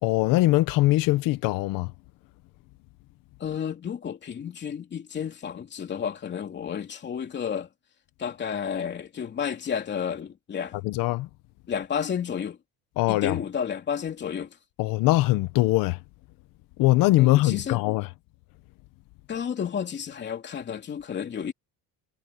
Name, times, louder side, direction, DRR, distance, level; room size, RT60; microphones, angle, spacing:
voice 1, 0.0-1.9 10.8-11.3 13.0-13.4 14.8-16.0 16.8-18.1, left 18 dB, 70° left, 1.1 m, -22 dB
voice 2, 3.4-7.7 8.2-10.8 11.7-12.6 13.1-14.6 17.2-17.8 19.3-21.5, left 7 dB, 30° left, 3.1 m, -31 dB
cardioid pair, 155°, 35 cm